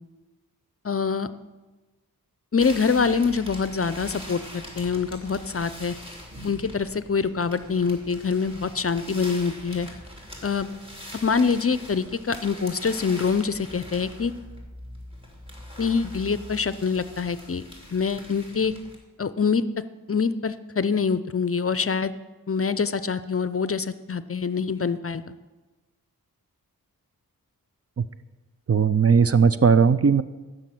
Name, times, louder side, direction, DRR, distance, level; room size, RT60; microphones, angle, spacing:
voice 1, 0.8-1.3 2.5-5.9 6.4-9.9 10.4-10.7 11.2-14.3 15.8-17.6 17.9-18.7 19.2-19.6 20.1-22.1 22.5-25.2, left 5 dB, 40° left, 14 dB, 0.6 m, -25 dB
sound 1, 2.6-18.9, left 1 dB, 15° right, 3.4 m, -42 dB
voice 2, 28.7-30.2, right 6 dB, 40° right, 13 dB, 0.5 m, -18 dB
15.0 x 6.5 x 7.7 m, 1.2 s
wide cardioid pair, 65°, 37 cm